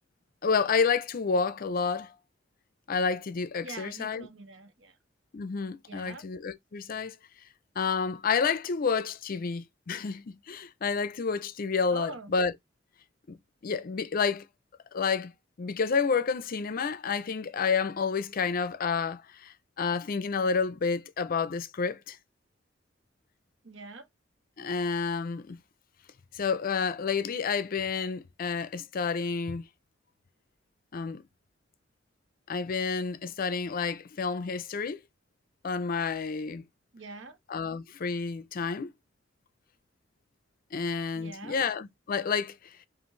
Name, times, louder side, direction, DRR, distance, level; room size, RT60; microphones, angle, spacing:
voice 1, 0.4-2.1 2.9-4.3 5.3-7.2 7.8-12.5 13.3-14.5 14.9-15.3 15.6-22.2 24.6-25.6 26.3-29.7 30.9-31.2 32.5-35.0 35.6-36.7 37.5-38.9 40.7-42.9, left 5 dB, 50° left, 0.5 m, -30 dB
voice 2, 3.6-5.0 5.9-6.3 11.9-12.3 23.6-24.1 36.9-37.4 41.1-41.6, right 3 dB, 85° right, 1.1 m, -44 dB
5.6 x 2.5 x 3.1 m
head